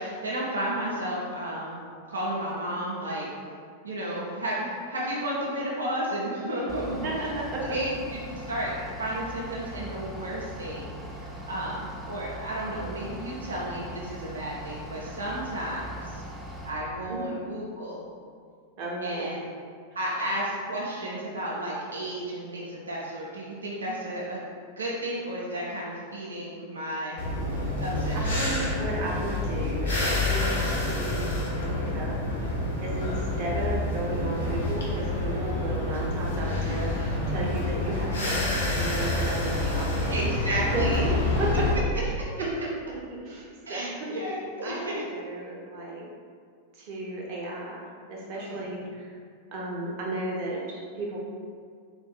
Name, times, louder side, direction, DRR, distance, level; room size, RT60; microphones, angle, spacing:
voice 1, 0.0-3.3 3.8-7.0 7.6-16.2 16.6-18.0 19.0-19.4 19.9-24.4 24.8-27.3 27.8-28.4 32.6-32.8 37.4-37.5 40.1-41.0 43.7-45.0 48.5-48.6, right 1 dB, 75° right, -5 dB, 0.6 m, -33 dB
Bus / Idling, 6.7-16.7, right 1 dB, 20° right, 0.6 m, -40 dB
voice 2, 6.8-7.6 17.1-17.3 18.8-19.3 20.0-20.2 28.1-41.0 41.4-42.0 42.4-44.2 44.6-46.1 46.7-49.2 49.5-51.2, right 2 dB, 40° right, -4 dB, 0.9 m, -34 dB
sound 1, 27.2-41.7, left 2 dB, 65° left, 0.9 m, -28 dB
3.8 x 2.5 x 3.9 m, 2.1 s
figure-of-eight pair, 90°, 0 cm